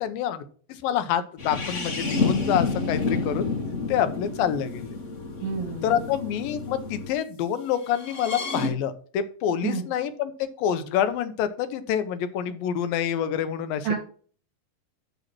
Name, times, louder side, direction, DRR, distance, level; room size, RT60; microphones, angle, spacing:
voice 1, 0.0-3.5 3.9-5.0 5.8-14.0, left 9 dB, 85° left, 10 dB, 2.7 m, -27 dB
sound 1, 1.4-7.1 7.9-8.7, left 4 dB, 50° left, 0.9 m, -29 dB
voice 2, 5.4-6.1 9.6-9.8 13.8-14.0, right 6 dB, 60° right, -3 dB, 3.6 m, -29 dB
11.0 x 4.0 x 6.0 m, 0.42 s
omnidirectional pair, 4.0 m